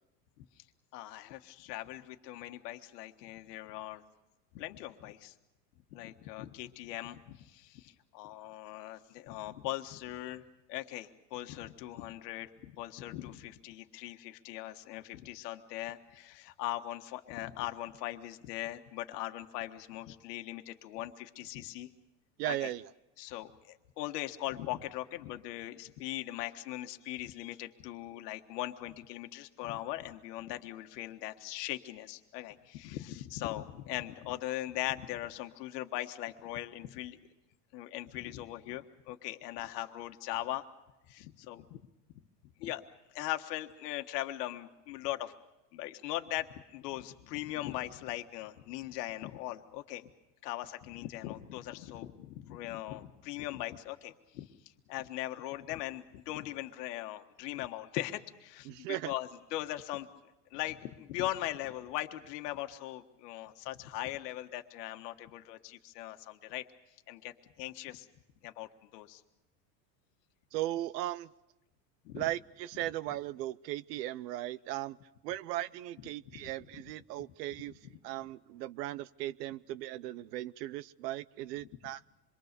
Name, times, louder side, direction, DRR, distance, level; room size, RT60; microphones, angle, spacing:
voice 1, 0.9-4.0 4.5-5.3 5.9-10.4 10.7-21.9 22.4-22.7 23.2-37.2 37.7-40.6 41.1-41.8 42.6-42.8 43.1-45.3 45.7-50.1 50.4-54.5 54.9-60.1 60.5-66.6 67.1-68.1 68.4-69.2 72.0-72.3 76.3-76.5, left 15 dB, 70° left, 7 dB, 1.6 m, -40 dB
voice 2, 22.4-22.9 58.7-59.1 70.5-71.3 72.1-75.0 75.2-82.0, right 14 dB, 75° right, 17 dB, 0.8 m, -37 dB
26.5 x 22.5 x 6.7 m, 0.98 s
supercardioid pair, 140°, 49 cm